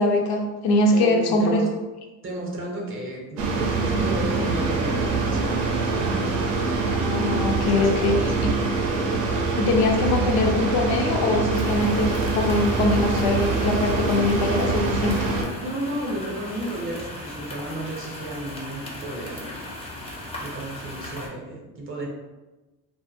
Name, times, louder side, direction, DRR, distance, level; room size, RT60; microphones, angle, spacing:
voice 1, 0.0-1.6 6.9-8.5 9.6-15.3, left 2 dB, 60° left, 2 dB, 0.5 m, -22 dB
voice 2, 0.9-1.7 2.2-6.4 7.7-8.7 15.6-19.6 20.4-22.1, right 1 dB, 30° right, -2 dB, 0.7 m, -32 dB
sound 1, 3.4-15.4, right 4 dB, 85° right, 0.6 m, -24 dB
sound 2, 11.5-21.3, left 1 dB, 15° left, 0.5 m, -38 dB
2.1 x 2.1 x 3.0 m, 1.1 s
supercardioid pair, 95°, 44 cm